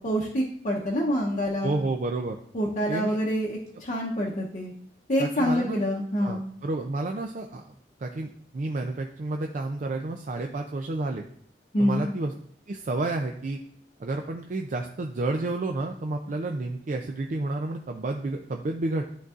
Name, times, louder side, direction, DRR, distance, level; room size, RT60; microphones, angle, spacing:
voice 1, 0.0-1.7 2.5-4.7 5.1-6.4 11.7-12.1, equal, 45° left, -4 dB, 0.8 m, -26 dB
voice 2, 1.6-2.4 2.9-3.2 5.2-5.8 6.2-7.6 8.0-11.3 11.8-12.3 12.7-13.6 14.0-19.0, right 2 dB, 45° right, 3 dB, 0.4 m, -30 dB
11.5 x 3.9 x 2.4 m, 0.65 s
head